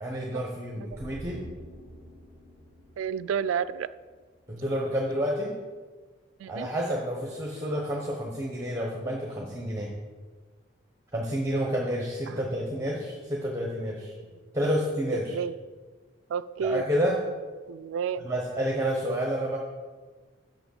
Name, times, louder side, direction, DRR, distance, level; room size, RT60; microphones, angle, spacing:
voice 1, 0.0-1.4 4.5-5.5 6.5-9.9 11.1-14.1 14.5-15.4 16.6-17.2 18.2-19.6, equal, 15° right, -2 dB, 1.0 m, -29 dB
sound 1, 0.9-4.3 4.6-4.7, equal, 15° left, 1.6 m, -46 dB
voice 2, 3.0-3.9 6.4-6.9 12.3-12.5 14.6-14.7 15.3-15.5 16.3-16.8 17.7-18.3, right 7 dB, 85° right, 15 dB, 0.3 m, -31 dB
6.7 x 6.1 x 6.4 m, 1.4 s
head